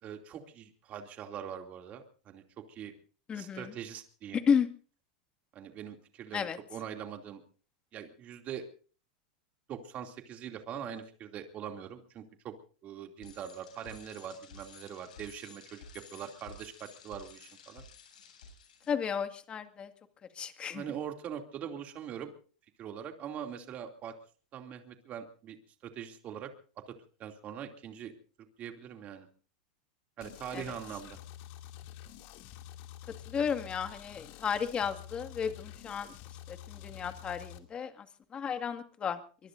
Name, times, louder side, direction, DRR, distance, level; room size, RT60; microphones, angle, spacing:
voice 1, 0.0-2.4 2.7-2.9 3.3-4.4 5.5-7.4 7.9-8.7 9.7-12.5 12.8-15.8 16.1-17.8 20.7-22.3 22.8-24.1 24.5-26.5 26.9-27.0 27.2-28.1 28.6-29.3 30.2-31.2, right 8 dB, 35° right, 4 dB, 2.8 m, -42 dB
voice 2, 3.3-3.7 4.3-4.7 6.3-6.6 18.9-19.9 20.4-20.8 30.5-30.6 33.3-36.1 36.5-38.1 38.3-39.2, left 7 dB, 25° left, 8 dB, 2.1 m, -33 dB
Bicycle, 13.2-18.9, left 4 dB, 85° left, 7.9 m, -53 dB
sound 1, 30.2-37.6, left 12 dB, 55° left, 2.6 m, -48 dB
24.0 x 22.0 x 2.7 m, 0.40 s
supercardioid pair, 125°, 4 cm